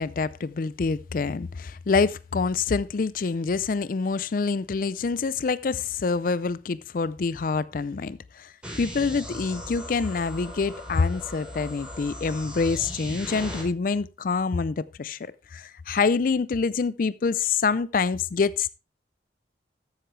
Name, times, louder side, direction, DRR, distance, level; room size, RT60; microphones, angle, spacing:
voice 1, 0.0-18.7, left 4 dB, 50° left, 0.4 m, -26 dB
sound 1, 8.6-13.6, equal, 5° right, 3.9 m, -38 dB
14.0 x 8.0 x 3.2 m
head